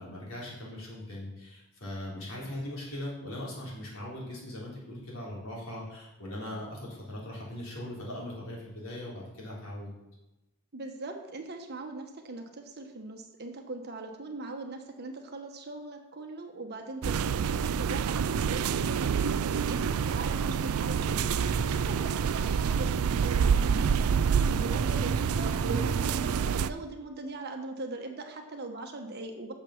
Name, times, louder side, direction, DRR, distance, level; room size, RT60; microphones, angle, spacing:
voice 1, 0.0-9.9, left 1 dB, 60° left, -5 dB, 3.9 m, -40 dB
voice 2, 10.7-29.5, right 2 dB, 45° right, 3 dB, 1.2 m, -40 dB
sound 1, 17.0-26.7, right 6 dB, 75° right, 0.4 m, -27 dB
8.8 x 6.9 x 5.9 m, 0.96 s
head